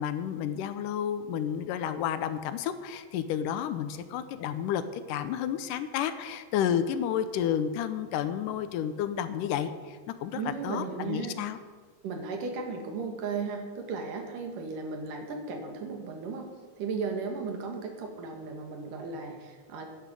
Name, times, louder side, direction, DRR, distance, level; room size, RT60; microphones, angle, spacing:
voice 1, 0.0-11.6, left 9 dB, 80° left, 11 dB, 2.3 m, -31 dB
voice 2, 10.3-11.4 12.0-16.5 16.8-19.9, right 4 dB, 75° right, 4 dB, 3.3 m, -35 dB
10.5 x 10.5 x 7.6 m, 1.5 s
omnidirectional pair, 3.8 m